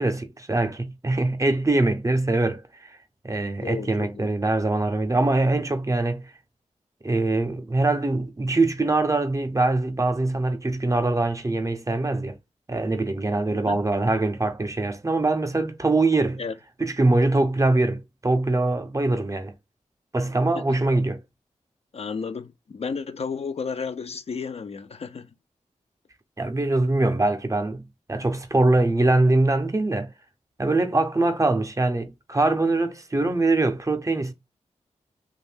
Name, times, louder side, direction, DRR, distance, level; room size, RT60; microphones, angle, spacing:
voice 1, 0.0-2.9 3.2-6.3 7.0-12.4 12.7-16.4 16.8-19.5 20.1-21.2 26.4-27.8 28.1-30.1 30.6-34.3, right 2 dB, 25° right, 0.6 m, -23 dB
voice 2, 3.6-4.3 13.6-13.8 16.4-16.5 20.5-20.8 21.9-25.3, left 5 dB, 55° left, 0.4 m, -32 dB
2.5 x 2.2 x 3.4 m
cardioid pair, 55°, 13 cm